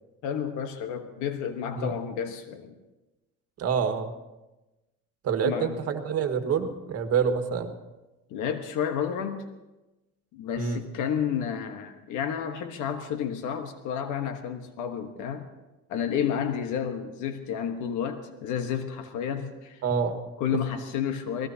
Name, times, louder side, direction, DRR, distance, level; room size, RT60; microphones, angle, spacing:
voice 1, 0.2-2.8 5.4-5.8 8.3-9.5 10.3-15.5 15.9-19.8 20.4-21.5, left 8 dB, 80° left, 7 dB, 1.3 m, -31 dB
voice 2, 3.6-4.1 5.2-7.7 10.6-10.8 19.8-20.2, right 6 dB, 55° right, 6 dB, 1.7 m, -27 dB
26.5 x 18.5 x 2.8 m, 1.0 s
cardioid pair, 120°, 30 cm